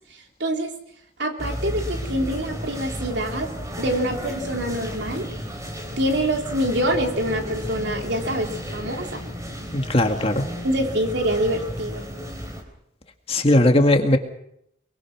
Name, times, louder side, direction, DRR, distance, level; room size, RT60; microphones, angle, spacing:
voice 1, 0.4-0.8 1.2-3.5 3.8-5.3 6.0-9.2 10.6-12.1, right 1 dB, 70° right, 3 dB, 3.5 m, -25 dB
sound 1, 1.4-12.6, equal, 15° right, 3.9 m, -33 dB
voice 2, 9.7-10.4 13.3-14.2, left 1 dB, 30° left, 5 dB, 2.0 m, -18 dB
24.0 x 22.5 x 6.0 m, 0.74 s
head